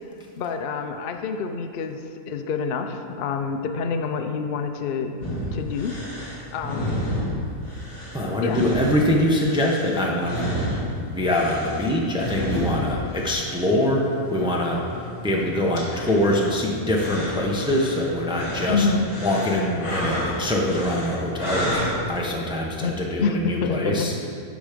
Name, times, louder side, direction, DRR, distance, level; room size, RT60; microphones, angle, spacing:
voice 1, 0.4-5.2 5.5-6.0 6.5-7.1 8.4-8.6 12.9-13.2 18.7-19.1 22.8-24.1, left 5 dB, 75° left, 6 dB, 0.5 m, -27 dB
sound 1, 5.2-22.2, equal, 60° left, 2.3 m, -31 dB
voice 2, 8.1-10.7 11.1-14.8 15.2-18.9 19.2-24.1, left 1 dB, 5° right, -2 dB, 0.7 m, -24 dB
10.5 x 6.2 x 5.1 m, 2.4 s
omnidirectional pair, 1.8 m